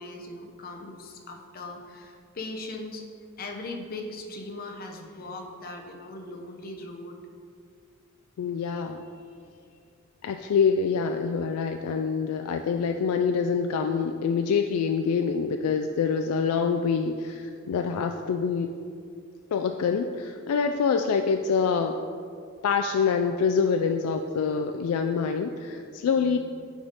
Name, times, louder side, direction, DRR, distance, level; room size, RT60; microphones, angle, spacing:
voice 1, 0.0-3.0 3.4-7.2 26.1-26.4, left 2 dB, 40° left, 2 dB, 0.7 m, -39 dB
voice 2, 8.4-9.0 10.2-18.7 19.5-22.0 22.6-26.4, left 5 dB, 85° left, 6 dB, 0.3 m, -26 dB
9.1 x 3.6 x 3.9 m, 2.3 s
head